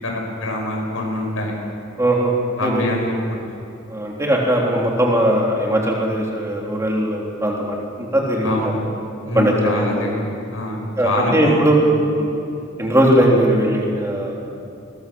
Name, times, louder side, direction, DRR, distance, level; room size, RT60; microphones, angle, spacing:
voice 1, 0.0-1.5 2.6-3.2 8.4-8.9 9.2-11.9, left 1 dB, 85° left, 0 dB, 6.1 m, -25 dB
voice 2, 2.0-2.3 2.6-2.8 3.9-8.6 9.4-10.1 11.0-11.8 12.2-12.4 12.8-14.5, right 1 dB, 15° right, -2 dB, 3.6 m, -19 dB
21.5 x 20.5 x 7.2 m, 2.6 s
head